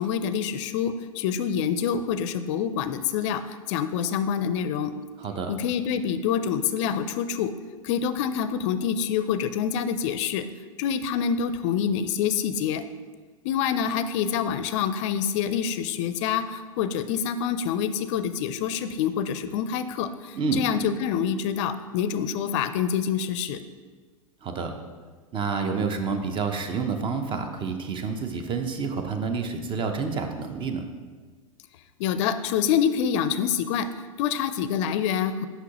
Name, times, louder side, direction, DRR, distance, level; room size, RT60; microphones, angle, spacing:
voice 1, 0.0-4.9 5.5-7.5 7.8-10.4 10.8-12.8 13.4-23.6 32.0-33.9 34.2-35.5, left 8 dB, 55° left, 11 dB, 0.4 m, -26 dB
voice 2, 5.2-5.5 20.3-20.7 24.4-24.7 25.3-30.8, right 5 dB, 30° right, 6 dB, 0.7 m, -28 dB
6.0 x 5.5 x 2.9 m, 1.4 s
hypercardioid pair, 100°, 18 cm